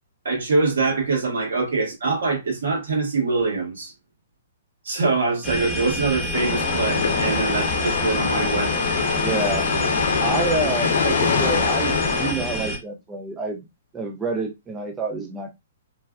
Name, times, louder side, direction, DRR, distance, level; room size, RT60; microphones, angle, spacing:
voice 1, 0.2-3.9 4.8-8.7, right 3 dB, 80° right, 1.6 m, -24 dB
sound 1, 5.4-12.8, equal, ahead, 1.1 m, -28 dB
sound 2, 6.3-12.3, left 5 dB, 75° left, 0.6 m, -23 dB
voice 2, 9.2-9.7 10.2-13.7 13.9-15.5, right 3 dB, 15° right, 0.5 m, -28 dB
3.2 x 2.3 x 2.3 m
hypercardioid pair, 140°, 0 cm